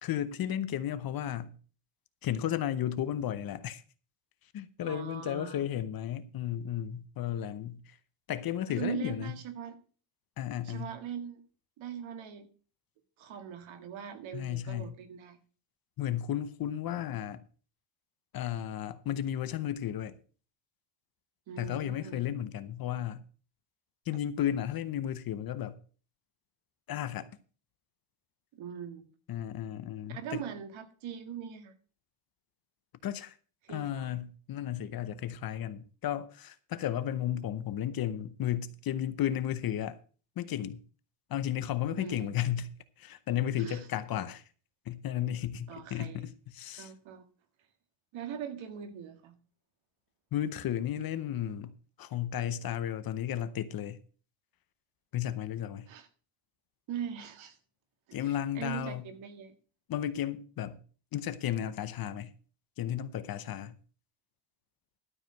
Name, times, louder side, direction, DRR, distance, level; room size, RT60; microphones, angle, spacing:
voice 1, 0.0-1.6 2.2-3.8 4.5-8.0 8.3-9.3 10.4-10.9 14.3-14.9 16.0-17.4 18.3-20.2 21.6-23.2 24.1-25.8 26.9-27.3 29.3-30.4 33.0-33.4 33.7-40.0 40.4-40.8 41.3-42.7 43.0-44.4 44.9-46.9 50.3-54.0 55.1-55.9 58.1-59.0 59.9-60.8 61.1-62.3 62.8-63.7, left 11 dB, 45° left, 0.8 m, -34 dB
voice 2, 4.8-5.7 8.8-9.8 10.6-11.4 11.8-12.5 13.2-15.4 21.5-22.2 28.5-29.1 30.1-31.7 33.6-34.1 41.9-42.3 43.6-43.9 45.7-46.3 46.8-47.2 48.1-49.4 55.9-56.1 56.9-57.6 58.1-59.5, right 8 dB, 70° right, 1.9 m, -41 dB
12.5 x 4.9 x 7.4 m
cardioid pair, 165°, 49 cm